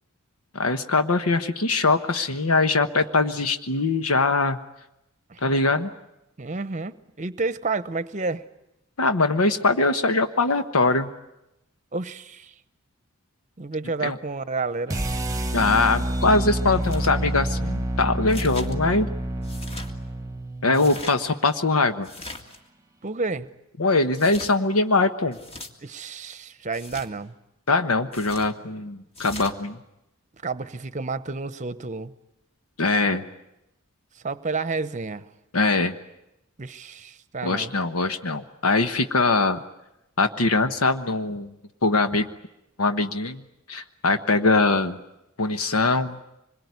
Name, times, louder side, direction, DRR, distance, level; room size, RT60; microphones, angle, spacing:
voice 1, 0.5-4.6 5.4-5.9 9.0-11.1 14.0-14.2 15.5-19.1 20.6-22.1 23.8-25.4 27.7-29.8 32.8-33.3 35.5-35.9 37.4-39.6 40.2-41.5 41.8-42.3 42.8-43.4 43.7-45.0 45.4-46.2, left 3 dB, 75° left, 8 dB, 1.2 m, -22 dB
voice 2, 6.4-8.4 11.9-12.5 13.6-15.0 23.0-23.5 25.8-27.3 30.4-32.1 34.2-35.3 36.6-37.7, right 3 dB, 35° right, 14 dB, 0.9 m, -30 dB
sound 1, 14.9-21.0, right 1 dB, 15° right, 1.2 m, -28 dB
sound 2, 16.8-17.1 18.3-18.7 19.4-19.9 20.7-21.2 22.0-22.6 24.1-24.5 25.3-25.7 26.7-27.1 28.1-28.5 29.1-29.5, left 2 dB, 25° left, 2.0 m, -40 dB
26.0 x 22.0 x 9.6 m, 0.88 s
head